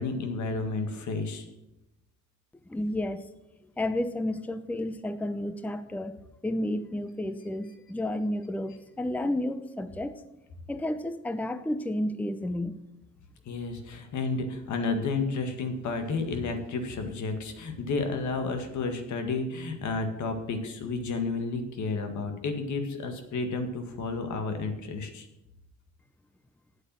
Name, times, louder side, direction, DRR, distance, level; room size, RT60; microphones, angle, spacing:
voice 1, 0.0-1.5 13.5-25.3, left 3 dB, 75° left, 6 dB, 1.9 m, -31 dB
voice 2, 2.7-3.3 3.8-6.1 6.4-10.2 10.7-12.8, left 1 dB, 5° left, 12 dB, 0.6 m, -31 dB
9.1 x 8.2 x 7.5 m, 0.95 s
cardioid pair, 90°, 30 cm